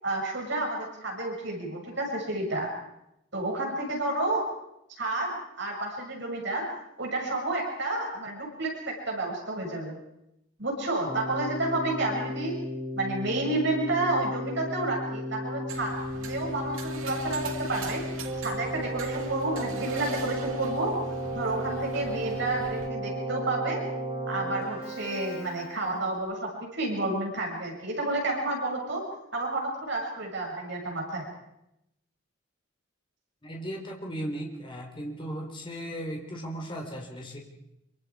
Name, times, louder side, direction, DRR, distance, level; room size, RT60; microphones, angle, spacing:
voice 1, 0.0-2.7 3.3-4.4 5.0-6.6 7.0-10.0 10.6-12.5 12.9-18.0 18.4-20.9 21.3-23.8 24.3-29.0 29.3-31.3, right 2 dB, 60° right, -1 dB, 6.8 m, -30 dB
Keyboard (musical), 11.1-26.1, equal, 25° right, 7.2 m, -34 dB
sound 1, 15.7-22.9, right 4 dB, 85° right, 2.6 m, -42 dB
voice 2, 33.4-37.4, right 1 dB, 25° left, 1 dB, 3.8 m, -36 dB
26.0 x 24.5 x 4.9 m, 0.84 s
head